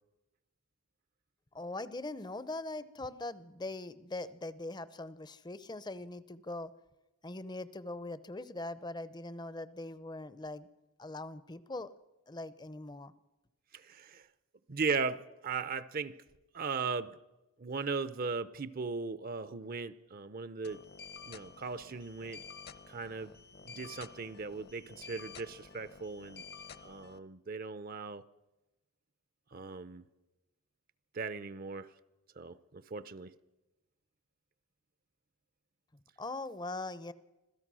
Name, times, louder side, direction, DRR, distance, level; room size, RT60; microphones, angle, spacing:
voice 1, 1.5-6.7 7.2-10.7 11.0-11.9 12.3-13.1 36.2-37.1, left 2 dB, 20° left, 0.6 m, -41 dB
voice 2, 13.7-14.3 14.7-16.2 16.5-17.2 17.6-20.8 21.3-22.4 22.9-23.3 23.7-26.4 26.8-28.2 29.5-30.0 31.1-31.9 32.4-33.3, right 4 dB, 40° right, 0.6 m, -38 dB
sound 1, 20.6-27.2, left 5 dB, 45° left, 0.9 m, -51 dB
26.0 x 16.0 x 6.2 m
head